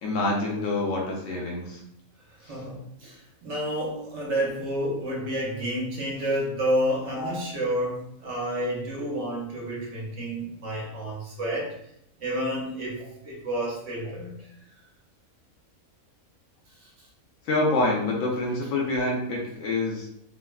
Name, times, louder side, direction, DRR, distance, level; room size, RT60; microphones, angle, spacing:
voice 1, 0.0-1.8 2.4-2.6 7.1-7.4 17.4-20.1, left 2 dB, 70° left, -2 dB, 1.0 m, -27 dB
voice 2, 2.4-11.7 12.2-14.3 16.8-16.9, equal, 60° right, -4 dB, 1.0 m, -30 dB
3.1 x 2.2 x 2.3 m, 0.74 s
omnidirectional pair, 1.6 m